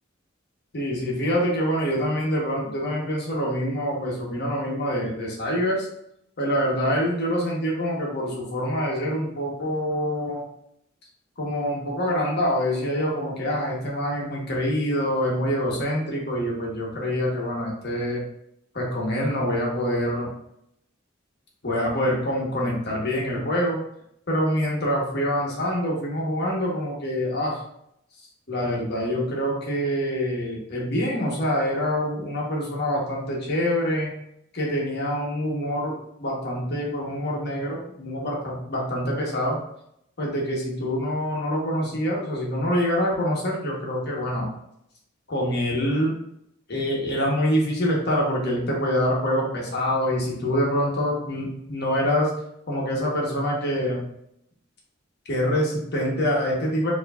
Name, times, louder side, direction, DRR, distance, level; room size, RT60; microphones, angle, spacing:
voice 1, 0.7-5.9 6.4-10.4 11.4-18.2 18.7-20.3 21.6-23.8 24.3-27.6 28.5-34.1 34.5-39.6 40.2-44.5 45.3-46.1 46.7-52.3 52.7-54.0 55.3-56.9, equal, 55° left, -3 dB, 1.2 m, -25 dB
4.7 x 3.0 x 2.4 m, 0.75 s
head